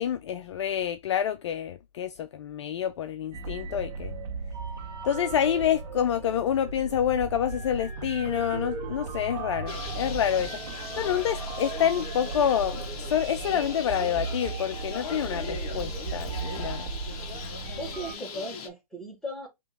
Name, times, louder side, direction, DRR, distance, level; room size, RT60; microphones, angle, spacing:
voice 1, 0.0-4.1 5.0-16.9, left 9 dB, 50° left, 0.4 m, -28 dB
sound 1, 3.3-18.1, right 4 dB, 45° right, 1.5 m, -36 dB
Bird, 9.7-18.7, left 4 dB, 30° left, 0.9 m, -39 dB
voice 2, 17.7-19.5, equal, ahead, 1.5 m, -37 dB
3.7 x 2.9 x 3.7 m
hypercardioid pair, 130°, 20 cm